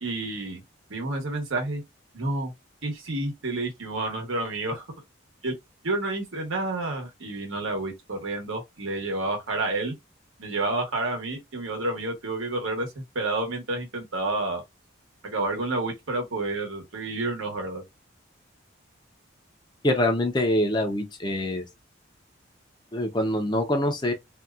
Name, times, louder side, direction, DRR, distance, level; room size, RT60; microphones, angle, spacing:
voice 1, 0.0-0.6 0.9-1.8 2.1-2.5 2.8-4.9 5.4-5.5 5.8-9.9 10.4-14.6 15.2-17.8, right 2 dB, 80° right, 1.1 m, -29 dB
voice 2, 19.8-21.7 22.9-24.1, left 1 dB, 20° left, 0.5 m, -24 dB
2.7 x 2.3 x 2.2 m
head